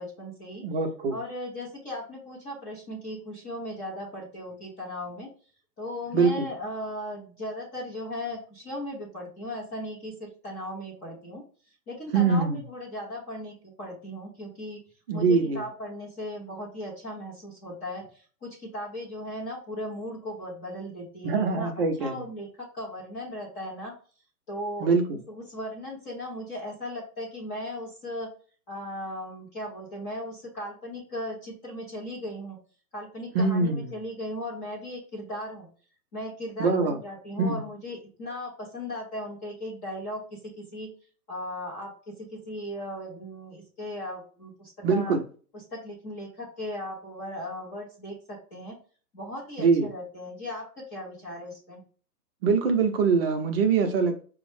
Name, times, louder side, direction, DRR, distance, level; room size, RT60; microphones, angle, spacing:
voice 1, 0.0-0.7 1.1-5.3 5.8-14.8 15.1-21.7 22.0-23.9 24.5-28.3 28.7-32.6 32.9-35.7 36.1-40.9 41.3-45.2 45.5-48.8 49.1-51.8, left 1 dB, 10° left, -5 dB, 0.5 m, -37 dB
voice 2, 0.6-1.2 6.1-6.5 12.1-12.6 15.1-15.6 21.2-22.2 24.8-25.0 33.3-33.9 36.6-37.0 37.4-37.6 44.8-45.2 49.6-49.9 52.4-54.2, right 4 dB, 40° right, 4 dB, 0.6 m, -23 dB
5.1 x 2.1 x 3.1 m, 0.41 s
hypercardioid pair, 140°, 48 cm